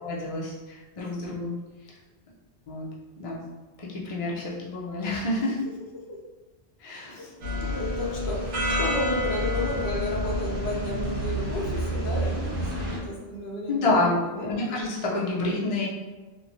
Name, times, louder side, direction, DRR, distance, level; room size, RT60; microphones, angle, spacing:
voice 1, 0.0-1.5 2.7-2.9 3.2-3.4 3.9-5.6 6.8-7.2 12.8-12.9 13.7-15.9, left 2 dB, 40° left, -4 dB, 0.6 m, -28 dB
sound 1, 7.4-13.0, equal, 75° right, 1.1 m, -28 dB
voice 2, 7.6-14.5, left 2 dB, 80° left, -1 dB, 0.9 m, -33 dB
3.0 x 2.2 x 2.6 m, 1.2 s
omnidirectional pair, 1.1 m